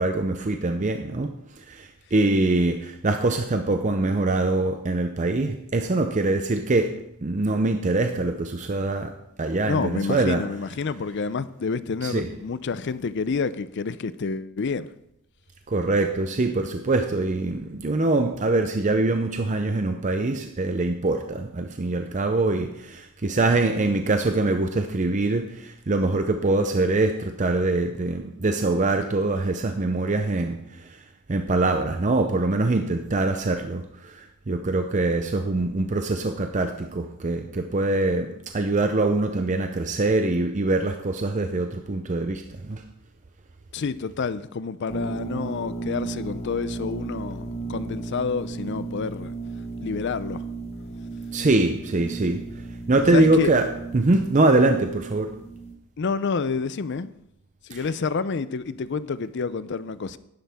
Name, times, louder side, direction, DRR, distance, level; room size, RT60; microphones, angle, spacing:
voice 1, 0.0-1.3 1.7-6.9 7.2-9.1 9.4-10.4 12.0-12.3 15.7-30.6 31.3-42.8 51.3-52.4 52.9-53.7 53.9-55.3 57.7-57.8, right 2 dB, 35° right, 6 dB, 0.5 m, -23 dB
voice 2, 9.7-14.9 43.7-49.3 49.8-50.4 53.1-53.5 56.0-57.1 57.7-60.2, left 5 dB, 50° left, 15 dB, 0.4 m, -28 dB
sound 1, 44.9-55.7, right 3 dB, 30° left, 0.9 m, -35 dB
11.5 x 10.5 x 3.5 m, 0.83 s
head